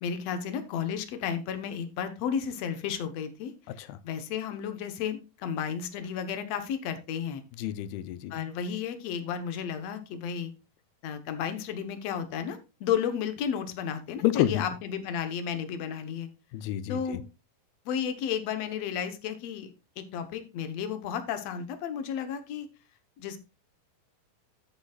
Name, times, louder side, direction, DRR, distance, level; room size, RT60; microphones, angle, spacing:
voice 1, 0.0-3.5 3.8-7.4 8.3-10.5 11.0-16.3 16.9-17.2 17.8-22.7 23.2-23.4, left 8 dB, 70° left, 8 dB, 1.6 m, -33 dB
voice 2, 7.6-8.5 14.2-14.6 16.5-17.2, left 13 dB, 85° left, 14 dB, 2.6 m, -29 dB
13.5 x 7.1 x 2.3 m, 0.29 s
omnidirectional pair, 4.3 m